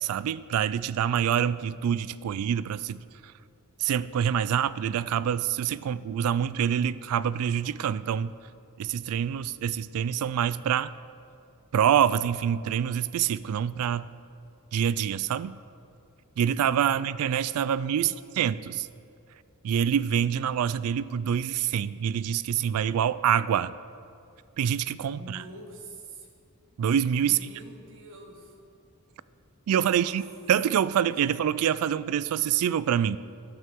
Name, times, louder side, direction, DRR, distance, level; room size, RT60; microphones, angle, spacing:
voice 1, 0.0-3.3 3.8-8.3 8.8-10.9 11.7-14.1 14.7-15.6 16.4-18.9 19.6-23.7 24.6-25.4 26.8-27.4 29.7-30.2 30.5-33.2, right 9 dB, 75° right, 18 dB, 0.3 m, -26 dB
voice 2, 18.0-18.4 25.1-26.3 27.2-28.5 29.7-30.2 31.0-31.4, right 1 dB, 60° right, 1 dB, 1.3 m, -47 dB
12.5 x 8.5 x 3.6 m, 2.4 s
head